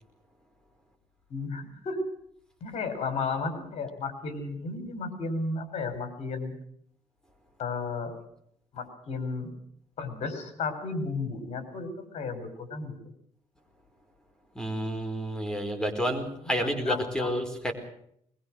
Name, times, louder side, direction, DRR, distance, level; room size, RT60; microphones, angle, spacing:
voice 1, 1.3-2.0 2.6-6.5 7.6-8.1 8.7-9.5 10.0-12.9 16.6-17.3, left 4 dB, 65° left, 9 dB, 5.3 m, -33 dB
voice 2, 14.5-17.7, equal, 5° left, 5 dB, 4.6 m, -30 dB
21.5 x 21.0 x 6.4 m, 0.69 s
cardioid pair, 95°, 12 cm